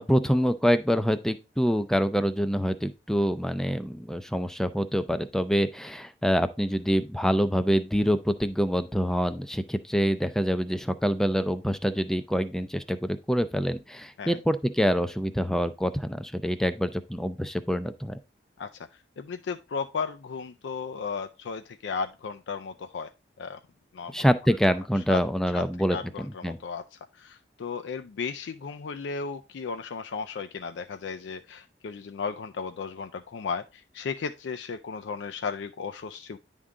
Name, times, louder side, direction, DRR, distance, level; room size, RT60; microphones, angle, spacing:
voice 1, 0.0-18.2 24.1-26.0 26.4-26.6, equal, 5° left, 11 dB, 0.4 m, -26 dB
voice 2, 18.6-23.1 23.4-23.6 23.9-24.2 25.1-25.2 25.5-25.6 25.9-36.4, left 5 dB, 85° left, 8 dB, 0.4 m, -35 dB
9.8 x 3.7 x 3.7 m, 0.30 s
head